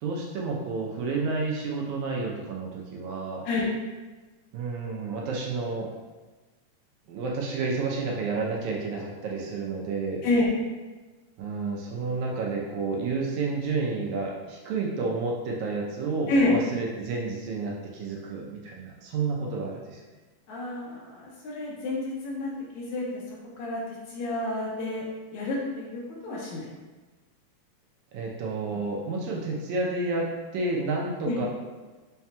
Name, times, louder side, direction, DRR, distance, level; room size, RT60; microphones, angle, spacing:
voice 1, 0.0-3.4 4.5-5.9 7.1-10.2 11.4-20.0 28.1-31.5, right 3 dB, 80° right, -2 dB, 2.0 m, -30 dB
voice 2, 20.5-23.2 23.6-23.8 24.1-25.0 25.3-26.7 31.3-31.4, left 2 dB, 75° left, -4 dB, 2.1 m, -28 dB
5.7 x 2.8 x 2.2 m, 1.3 s
omnidirectional pair, 3.5 m